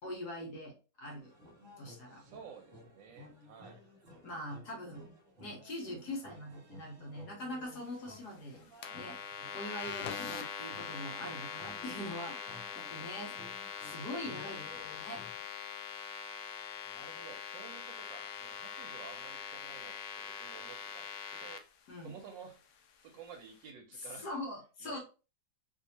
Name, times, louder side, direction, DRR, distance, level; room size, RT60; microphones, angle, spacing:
voice 1, 0.0-1.3 1.8-2.2 4.2-8.6 8.9-9.2 9.5-12.4 12.7-13.3 13.8-15.2 21.9-22.2 24.0-25.0, left 1 dB, 60° left, -1 dB, 1.4 m, -43 dB
sound 1, 1.2-15.5, left 1 dB, 45° right, 1.3 m, -55 dB
voice 2, 2.0-3.8 16.8-21.6 22.0-22.6 23.0-24.4 24.8-25.0, right 7 dB, 75° right, 5 dB, 1.2 m, -52 dB
sound 2, 8.8-21.6, left 7 dB, 80° left, 0.8 m, -42 dB
3.2 x 2.7 x 2.7 m, 0.32 s
omnidirectional pair, 2.2 m